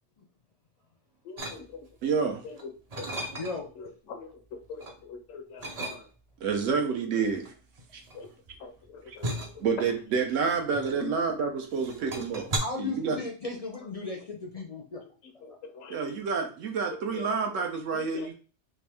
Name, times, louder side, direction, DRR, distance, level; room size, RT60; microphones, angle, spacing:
voice 1, 1.2-1.9 2.4-3.1 3.5-6.1 8.1-8.3 8.6-10.0 11.0-11.2 12.1-12.2 13.1-13.2 13.8-13.9 15.2-16.2 16.9-17.3 17.6-17.7 17.9-18.3, left 5 dB, 85° left, 5 dB, 1.0 m, -43 dB
sound 1, 1.4-2.0 2.5-3.8 4.2-5.0 5.6-6.4 7.3-11.4 11.7-12.6, right 1 dB, 40° right, 0.6 m, -37 dB
voice 2, 2.0-2.4 6.4-7.5 7.9-8.0 9.1-9.2 9.6-12.5 12.8-13.2 15.9-18.3, right 5 dB, 80° right, 4 dB, 1.1 m, -28 dB
voice 3, 12.6-15.0, left 3 dB, 50° left, 1 dB, 0.4 m, -35 dB
3.5 x 2.6 x 3.3 m, 0.37 s
omnidirectional pair, 1.3 m